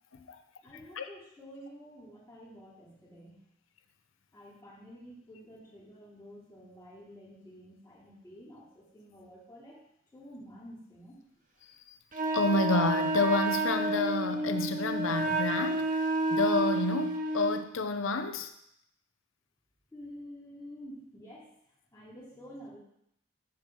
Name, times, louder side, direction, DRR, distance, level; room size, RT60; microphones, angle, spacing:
voice 1, 0.6-3.4 4.3-9.8 10.1-11.2 19.9-21.5 21.9-22.8, equal, 15° left, -6 dB, 3.0 m, -49 dB
Wind instrument woodwind instrument, 12.1-17.7, right 2 dB, 40° right, 0.7 m, -30 dB
voice 2, 12.3-15.8 16.3-18.5, left 3 dB, 70° left, 8 dB, 0.6 m, -29 dB
7.2 x 4.5 x 6.0 m, 0.76 s
head